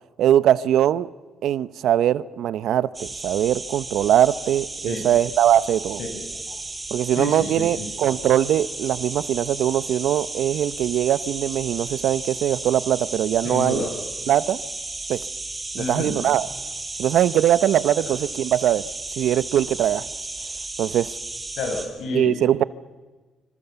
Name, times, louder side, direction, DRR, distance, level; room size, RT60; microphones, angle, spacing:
voice 1, 0.2-1.1 1.4-6.0 6.9-13.8 14.3-14.6 15.1-15.2 15.7-16.5 17.0-18.8 19.2-20.1 20.8-21.1 22.1-22.6, right 11 dB, 75° right, 0.7 m, -21 dB
sound 1, 2.9-21.9, right 2 dB, 20° right, 6.6 m, -34 dB
voice 2, 6.0-6.6 7.1-7.9 13.4-13.9 15.8-16.2 21.6-22.3, left 3 dB, 75° left, 5.7 m, -30 dB
26.5 x 26.0 x 7.1 m
cardioid pair, 110°, 0 cm